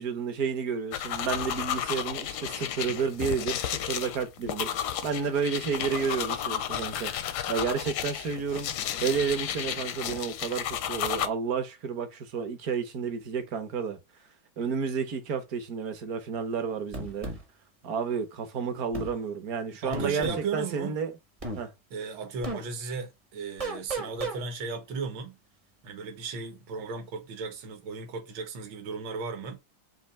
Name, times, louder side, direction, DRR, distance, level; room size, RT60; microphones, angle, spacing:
voice 1, 0.0-4.8 5.0-7.1 7.5-8.7 9.0-14.0 14.6-17.3 17.8-21.1 21.6-21.7, right 6 dB, 55° right, 1.2 m, -31 dB
sound 1, 0.9-11.3, left 10 dB, 75° left, 1.0 m, -33 dB
sound 2, 16.9-17.4 18.9-19.1 19.9-20.4 21.4-21.6 22.4-22.6 23.6-24.4, right 2 dB, 30° right, 0.6 m, -33 dB
voice 2, 19.8-21.0 21.9-25.4 25.8-29.6, right 5 dB, 75° right, 1.7 m, -35 dB
4.4 x 2.9 x 4.1 m
omnidirectional pair, 2.2 m